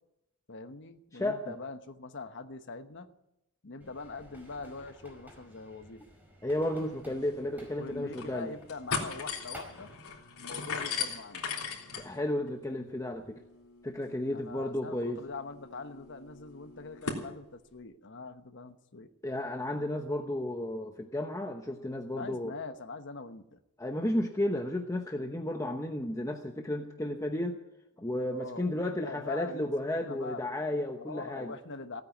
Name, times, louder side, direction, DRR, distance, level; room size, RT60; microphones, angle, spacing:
voice 1, 0.5-3.1 3.6-6.0 7.1-7.2 7.8-9.9 10.4-11.4 14.3-19.1 22.2-23.6 28.3-30.4 31.0-32.0, left 4 dB, 55° left, 9 dB, 1.1 m, -43 dB
voice 2, 1.1-1.5 6.4-8.5 12.0-13.4 13.8-15.2 19.2-22.5 23.8-27.6 28.0-31.5, left 1 dB, 15° left, 4 dB, 0.9 m, -33 dB
sound 1, 3.8-10.0, equal, 10° right, 4.9 m, -54 dB
sound 2, 6.9-7.0 7.3-7.4 7.9-8.3 8.6-17.3, left 5 dB, 70° left, 3.5 m, -39 dB
17.0 x 9.3 x 9.3 m, 0.87 s
head